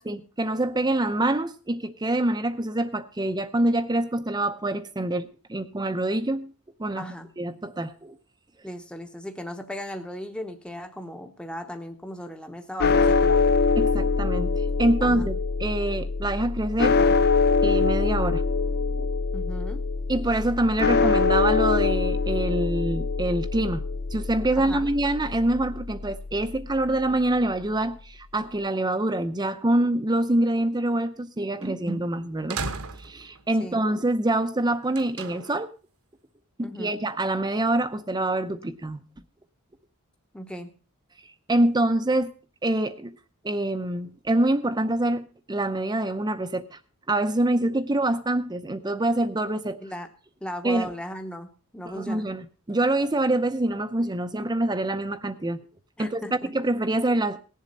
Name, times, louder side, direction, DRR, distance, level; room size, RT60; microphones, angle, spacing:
voice 1, 0.0-6.5 6.8-7.1 7.4-8.1 13.8-17.0 17.6-18.5 19.0-19.1 20.1-23.8 24.1-32.6 33.0-35.7 36.6-39.0 41.5-42.3 42.6-43.2 43.4-46.8 47.1-49.8 50.6-50.9 51.9-55.6 56.0-56.2 56.5-57.4, right 1 dB, 20° right, 9 dB, 0.6 m, -25 dB
voice 2, 7.0-7.3 8.6-13.4 15.0-15.3 19.3-19.8 24.6-24.9 33.6-33.8 36.6-37.0 40.3-40.7 49.8-50.1 50.4-51.5 51.7-52.3 56.0-56.5, equal, 5° left, 5 dB, 0.9 m, -37 dB
sound 1, 12.8-27.0, left 4 dB, 45° left, 0.5 m, -24 dB
sound 2, 31.6-31.7 32.5-33.4 34.9-35.7, right 4 dB, 70° right, 1.2 m, -34 dB
18.0 x 7.4 x 5.2 m, 0.37 s
head